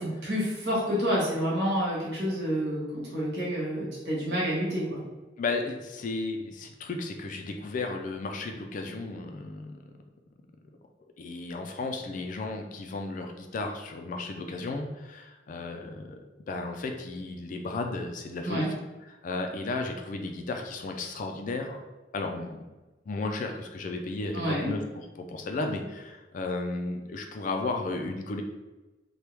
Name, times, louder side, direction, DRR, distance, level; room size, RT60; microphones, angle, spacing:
voice 1, 0.2-5.0 18.4-18.7 24.3-24.7, equal, 60° right, -5 dB, 1.2 m, -28 dB
voice 2, 5.4-9.9 11.2-18.7 19.1-21.8 22.1-22.6 23.1-24.8 25.2-28.4, left 3 dB, 45° left, 4 dB, 0.3 m, -34 dB
3.0 x 2.2 x 3.2 m, 1.1 s
head